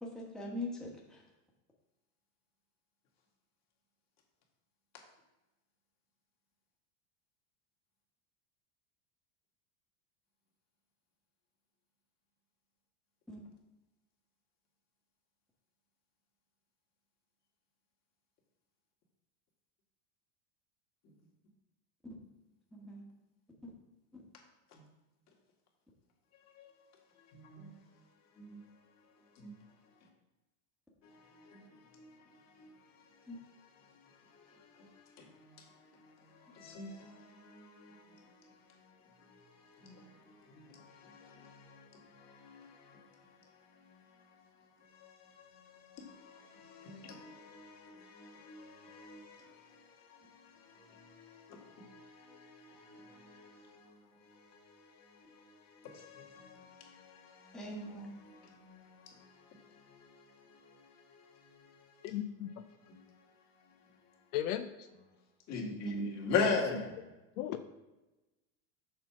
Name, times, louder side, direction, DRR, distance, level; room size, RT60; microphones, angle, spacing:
voice 1, 0.0-1.2 13.3-13.4 22.7-23.0 23.6-23.7 24.1-24.2 33.3-33.4 39.8-40.0 57.5-58.1 65.8-65.9, left 1 dB, ahead, 1.1 m, -43 dB
voice 2, 27.3-27.7 28.4-28.7 29.4-29.5 31.0-32.8 33.1-33.2 34.3-38.5 38.8-38.9 39.3-43.3 43.8-44.0 44.9-57.6 58.3-61.9 62.9-63.0 65.5-66.8, left 4 dB, 40° left, 1.9 m, -43 dB
voice 3, 62.0-62.5 64.3-64.7 67.4-67.6, left 12 dB, 85° left, 0.7 m, -35 dB
6.7 x 4.3 x 5.8 m
supercardioid pair, 145°, 42 cm